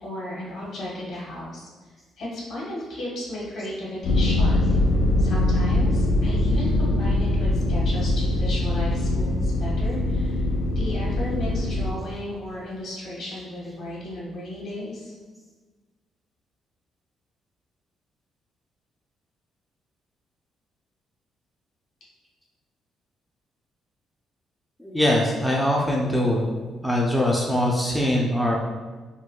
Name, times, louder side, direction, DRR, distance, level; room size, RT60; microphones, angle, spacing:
voice 1, 0.0-1.7 2.2-4.6 5.2-10.5 10.7-15.1, left 1 dB, 65° left, -5 dB, 1.0 m, -34 dB
sound 1, 4.0-11.9, left 1 dB, 80° left, 0.4 m, -22 dB
voice 2, 24.8-26.6 26.8-28.6, left 1 dB, ahead, -3 dB, 0.3 m, -22 dB
3.6 x 2.1 x 2.2 m, 1.3 s
cardioid pair, 120°, 0 cm